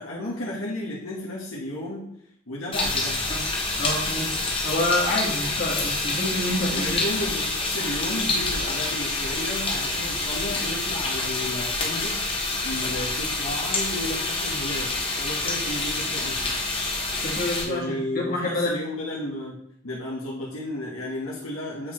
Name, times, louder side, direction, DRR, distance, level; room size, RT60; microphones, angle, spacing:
voice 1, 0.0-2.1 2.5-3.2 6.7-12.2 12.6-16.5 17.6-19.6 19.8-21.9, left 1 dB, 90° left, -5 dB, 1.4 m, -33 dB
sound 1, 2.7-17.6, left 2 dB, 25° left, 1.0 m, -27 dB
voice 2, 3.8-7.0 17.2-18.7, left 1 dB, 45° left, -3 dB, 1.7 m, -27 dB
8.2 x 4.5 x 3.1 m, 0.72 s
head